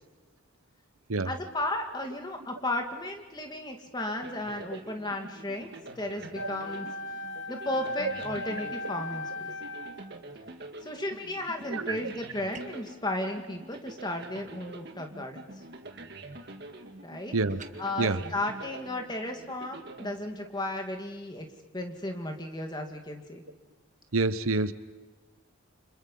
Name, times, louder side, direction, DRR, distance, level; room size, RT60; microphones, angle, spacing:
voice 1, 1.2-6.9 7.5-9.5 10.8-15.5 17.0-17.3 17.8-21.5 21.7-23.4, left 1 dB, 20° left, 4 dB, 2.2 m, -34 dB
sound 1, 4.2-20.8, right 2 dB, 50° right, 2.0 m, -46 dB
Wind instrument woodwind instrument, 6.3-10.1, left 2 dB, 55° left, 1.5 m, -38 dB
sound 2, 12.5-12.9 17.5-17.8, right 3 dB, 35° right, 1.4 m, -44 dB
voice 2, 17.3-17.6 18.0-18.2 24.1-24.7, right 3 dB, 85° right, 13 dB, 1.0 m, -27 dB
29.5 x 26.0 x 5.6 m, 1.3 s
head